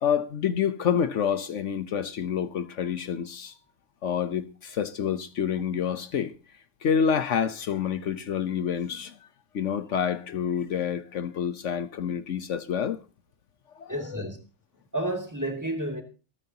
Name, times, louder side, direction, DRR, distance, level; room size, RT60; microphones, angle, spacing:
voice 1, 0.0-3.5 4.0-6.3 6.8-9.2 9.5-13.0 13.7-14.2, left 8 dB, 70° left, 1.1 m, -28 dB
voice 2, 13.9-14.4 14.9-16.0, right 1 dB, 15° right, 2.5 m, -31 dB
26.0 x 9.3 x 2.8 m
omnidirectional pair, 1.3 m